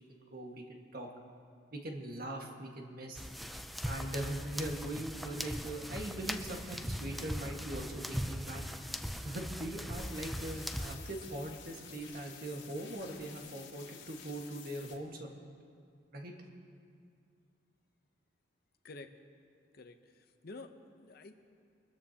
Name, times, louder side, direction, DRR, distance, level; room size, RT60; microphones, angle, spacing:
voice 1, 0.1-1.1 1.7-3.2 3.8-8.6 9.2-15.5 16.1-16.3, right 1 dB, 55° right, 1 dB, 1.6 m, -41 dB
sound 1, 3.1-11.0, equal, ahead, 0.4 m, -40 dB
sound 2, 9.9-14.9, left 7 dB, 85° left, 1.8 m, -52 dB
voice 2, 19.7-21.4, left 3 dB, 55° left, 8 dB, 0.8 m, -50 dB
23.5 x 13.5 x 2.9 m, 2.3 s
head